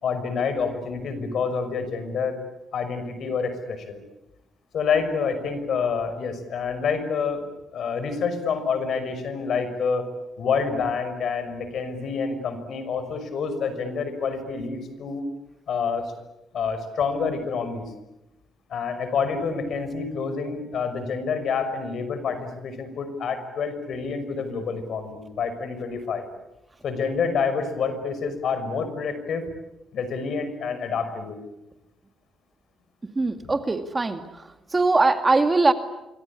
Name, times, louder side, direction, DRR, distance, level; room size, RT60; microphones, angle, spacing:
voice 1, 0.0-2.4 2.7-4.0 4.7-7.4 7.7-10.0 10.4-15.2 15.7-16.1 16.5-17.9 18.7-26.3 26.8-29.5 29.9-31.4 33.4-33.5, left 5 dB, 65° left, 10 dB, 5.8 m, -27 dB
voice 2, 33.2-34.2 34.7-35.7, right 3 dB, 25° right, 8 dB, 2.2 m, -21 dB
27.0 x 24.5 x 8.7 m, 0.96 s
cardioid pair, 90°, 0 cm